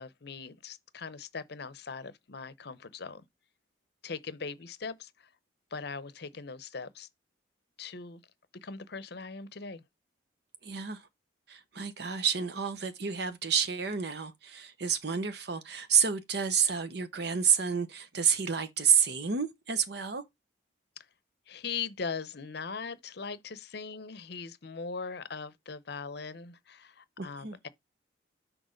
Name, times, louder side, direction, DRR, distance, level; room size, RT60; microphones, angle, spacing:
voice 1, 0.0-3.2 4.0-5.3 5.7-7.1 7.8-8.2 8.6-9.8 21.0-21.1 21.5-27.7, left 5 dB, 55° left, 0.7 m, -40 dB
voice 2, 10.6-11.0 11.5-20.2 27.2-27.6, right 7 dB, 55° right, 0.8 m, -29 dB
6.4 x 4.4 x 5.1 m
head